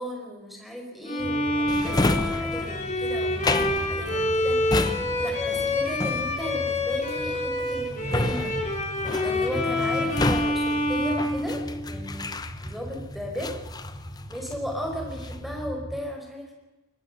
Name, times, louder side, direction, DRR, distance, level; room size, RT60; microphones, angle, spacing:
voice 1, 0.0-8.6 9.2-13.6 14.3-16.5, equal, ahead, 1 dB, 4.7 m, -36 dB
Bowed string instrument, 1.1-12.1, left 1 dB, 35° left, 4.0 m, -27 dB
sound 1, 1.2-16.0, equal, 25° right, 2.8 m, -39 dB
Drawer open or close, 1.7-12.9 13.4-14.7 15.0-15.5, left 2 dB, 20° left, 0.9 m, -31 dB
23.0 x 20.5 x 6.7 m, 1.1 s
head